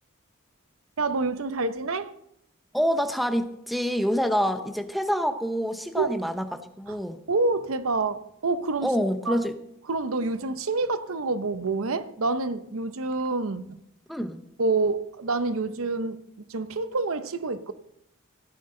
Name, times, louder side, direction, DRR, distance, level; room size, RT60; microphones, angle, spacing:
voice 1, 1.0-2.1 6.0-6.1 6.9-7.0 7.3-8.9 9.3-9.4 9.9-13.8 14.6-16.2 16.5-17.7, right 3 dB, 80° right, 0.7 m, -27 dB
voice 2, 2.7-7.2 8.8-9.5 14.1-14.4, equal, ahead, 0.7 m, -27 dB
16.0 x 11.5 x 3.8 m
head